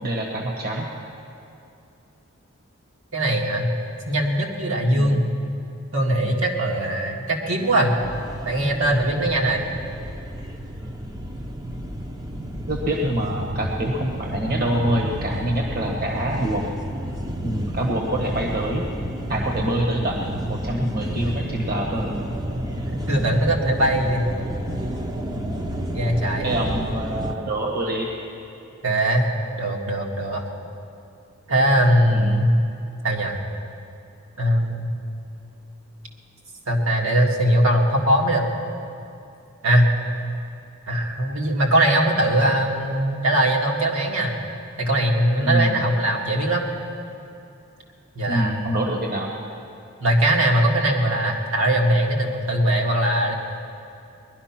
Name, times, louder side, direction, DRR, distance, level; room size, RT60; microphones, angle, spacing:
voice 1, 0.0-0.9 4.9-5.2 12.7-16.7 17.4-18.8 19.3-22.2 26.4-28.1 32.1-32.4 45.4-45.9 48.3-49.3, right 1 dB, 45° right, 0 dB, 1.4 m, -25 dB
voice 2, 3.1-3.7 4.1-5.3 5.9-7.9 8.5-9.6 22.9-24.3 25.9-26.5 28.8-29.3 29.6-30.4 31.5-32.5 33.0-33.4 34.4-34.9 36.7-38.5 39.6-39.9 40.9-44.4 44.8-46.7 48.2-48.6 50.0-53.3, right 1 dB, 70° right, 0 dB, 1.9 m, -21 dB
sound 1, 8.0-27.3, equal, 20° right, 0.8 m, -31 dB
20.5 x 11.5 x 5.9 m, 2.6 s
head